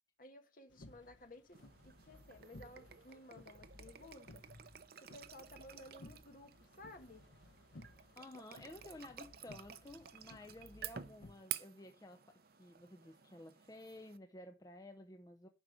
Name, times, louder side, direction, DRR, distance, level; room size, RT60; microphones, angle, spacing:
voice 1, 0.2-1.6 1.8-4.4 5.0-7.2, left 1 dB, 45° left, 1.5 m, -56 dB
sound 1, 0.7-11.3, left 1 dB, 70° left, 1.0 m, -59 dB
sound 2, 1.5-14.2, right 10 dB, 50° right, 0.7 m, -51 dB
voice 2, 8.2-15.5, left 1 dB, 20° left, 0.6 m, -54 dB
9.8 x 5.4 x 6.1 m
head